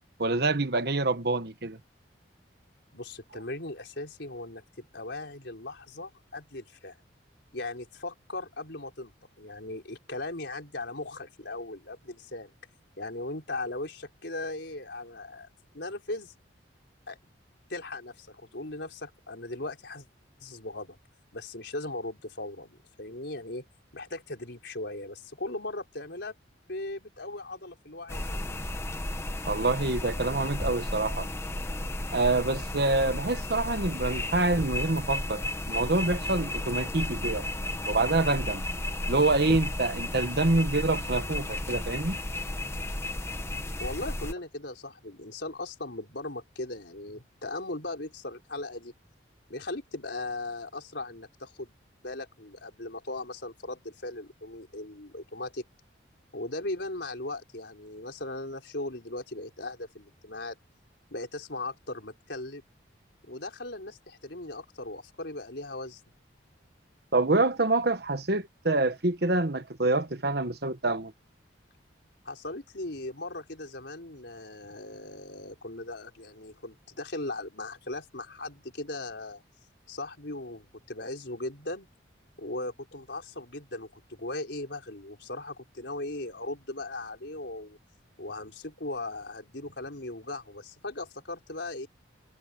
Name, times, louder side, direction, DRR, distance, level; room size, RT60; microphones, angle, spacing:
voice 1, 0.2-1.8 29.4-31.3 32.1-37.4 37.9-38.6 39.1-42.2 67.1-71.1, right 2 dB, 55° right, 1.3 m, -26 dB
voice 2, 2.9-7.0 7.5-12.5 13.0-15.5 15.7-16.3 17.1-17.2 17.7-20.1 20.4-21.0 21.3-23.6 23.9-26.3 26.7-28.5 43.8-48.9 49.5-51.7 52.0-55.6 56.3-60.6 61.1-62.6 63.3-66.0 72.2-79.4 79.9-81.9 82.4-87.8 88.2-91.9, left 2 dB, 65° left, 4.5 m, -38 dB
sound 1, 28.1-44.3, left 1 dB, 15° left, 1.1 m, -33 dB
head